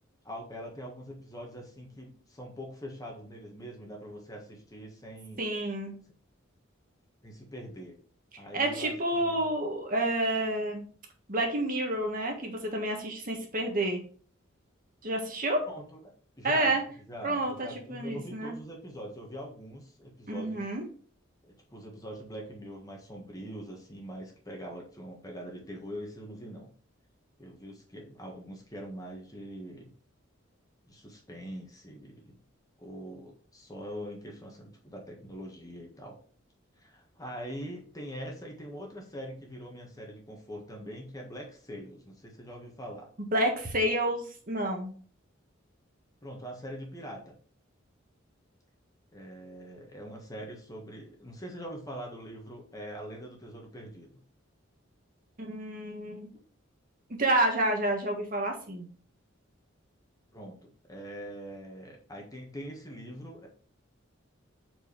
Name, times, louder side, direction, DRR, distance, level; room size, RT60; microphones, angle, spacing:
voice 1, 0.2-5.4 7.2-8.0 8.4-9.4 15.6-16.0 16.4-16.8 17.1-20.6 21.5-26.7 27.4-29.9 30.9-32.4 32.8-36.2 36.8-43.1 46.2-47.3 49.1-54.2 60.3-63.5, equal, 20° left, 0 dB, 1.5 m, -43 dB
voice 2, 5.4-5.9 8.5-10.8 11.3-14.0 15.0-15.6 16.4-16.8 17.2-18.6 20.3-20.8 43.3-44.9 55.4-56.3 57.2-58.9, right 1 dB, 45° right, 2 dB, 1.5 m, -29 dB
5.2 x 4.7 x 5.0 m, 0.44 s
head